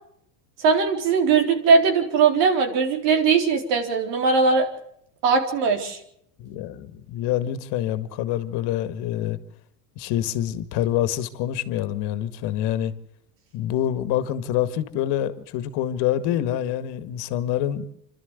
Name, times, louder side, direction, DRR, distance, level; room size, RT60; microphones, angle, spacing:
voice 1, 0.6-4.7 5.2-6.0, right 5 dB, 75° right, 4.1 m, -20 dB
voice 2, 6.4-9.4 10.0-12.9 13.5-17.9, left 11 dB, 55° left, 1.9 m, -26 dB
26.5 x 12.5 x 8.3 m
supercardioid pair, 110°, 48 cm